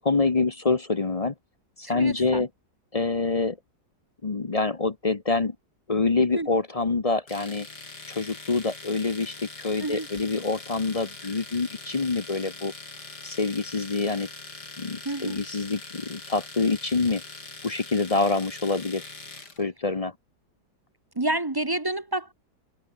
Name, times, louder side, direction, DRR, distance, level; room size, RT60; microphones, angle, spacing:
voice 1, 0.0-1.3 1.8-2.5 2.9-3.6 4.2-5.6 5.9-7.7 8.1-12.7 13.2-14.3 14.8-17.2 17.6-19.1 19.6-20.1, left 3 dB, 30° left, 0.7 m, -26 dB
voice 2, 1.9-2.5 6.4-6.5 9.8-10.1 15.0-15.3 21.2-22.3, right 2 dB, 20° right, 0.6 m, -29 dB
Domestic sounds home sounds, 7.3-19.6, left 3 dB, 75° left, 4.8 m, -42 dB
omnidirectional pair, 1.8 m